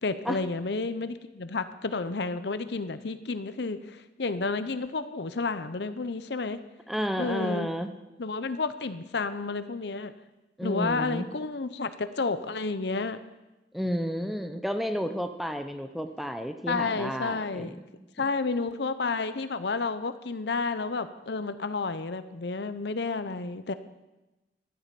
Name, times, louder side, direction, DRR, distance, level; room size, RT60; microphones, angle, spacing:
voice 1, 0.0-6.6 7.2-7.7 8.2-10.1 10.6-13.2 16.7-17.8 18.2-23.7, left 4 dB, 65° left, 12 dB, 0.7 m, -31 dB
voice 2, 6.9-7.9 10.6-11.3 13.7-17.8, equal, ahead, 7 dB, 0.7 m, -31 dB
13.5 x 8.5 x 7.5 m, 1.0 s
head